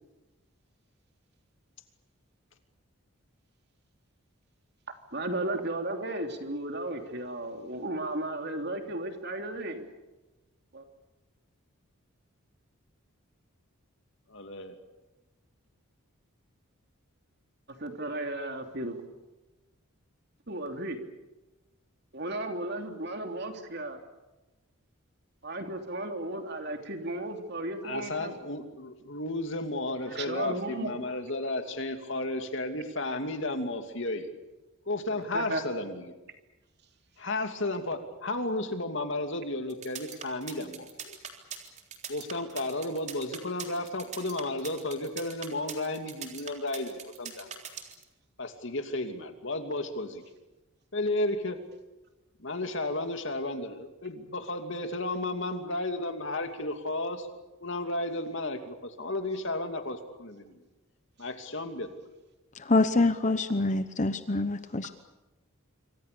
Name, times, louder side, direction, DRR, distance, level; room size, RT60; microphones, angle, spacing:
voice 1, 5.1-9.9 10.7-10.8 17.8-19.0 20.5-21.0 22.1-24.0 25.4-28.3 30.1-31.0 35.3-35.6, right 1 dB, 50° right, 5 dB, 3.2 m, -34 dB
voice 2, 14.3-14.7 27.8-34.3 34.9-36.2 37.2-41.2 42.1-47.6 48.4-50.2 50.9-51.6 52.4-57.3 57.6-60.5 61.2-61.9, left 2 dB, 55° left, 6 dB, 2.7 m, -33 dB
sound 1, 39.7-48.0, right 7 dB, 35° right, 3.8 m, -41 dB
voice 3, 62.6-64.9, left 2 dB, 35° left, 10 dB, 0.9 m, -25 dB
27.0 x 25.5 x 6.9 m, 1.1 s
head